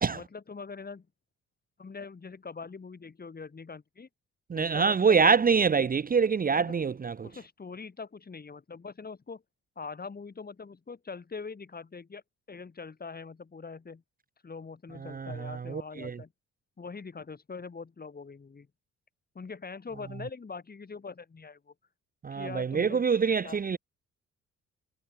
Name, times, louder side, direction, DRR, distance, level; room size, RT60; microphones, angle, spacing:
voice 1, 0.1-1.1 1.8-4.1 4.5-5.2 6.6-6.8 7.2-9.4 9.8-12.2 12.5-14.0 14.4-16.3 16.8-18.7 19.3-21.7 22.3-23.1 23.4-23.6, left 4 dB, 30° left, 4.3 m, -43 dB
voice 2, 4.5-7.3 15.1-16.2 22.2-23.8, right 5 dB, 30° right, 0.8 m, -25 dB
cardioid pair, 90°, 30 cm